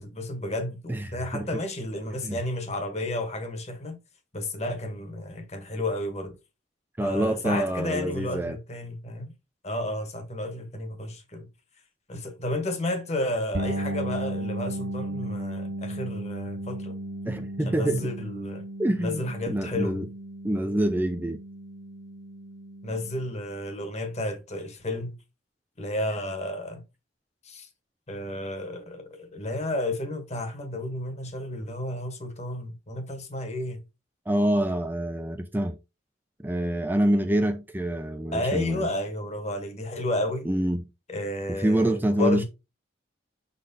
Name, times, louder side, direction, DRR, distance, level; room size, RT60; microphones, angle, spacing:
voice 1, 0.0-4.0 4.3-6.4 7.0-9.3 9.6-11.5 12.1-16.9 17.6-18.6 19.0-20.0 22.8-25.2 25.8-26.8 27.4-27.7 28.1-33.8 38.3-40.5 41.1-42.4, left 1 dB, 35° left, 1.3 m, -32 dB
voice 2, 0.9-1.5 2.2-2.4 7.0-8.6 17.3-18.1 18.8-20.1 20.4-21.4 34.3-35.8 36.4-38.8 40.5-40.8 41.5-42.4, right 1 dB, 10° right, 0.4 m, -26 dB
sound 1, 13.5-23.3, right 1 dB, 65° right, 1.9 m, -35 dB
6.3 x 4.0 x 4.0 m
head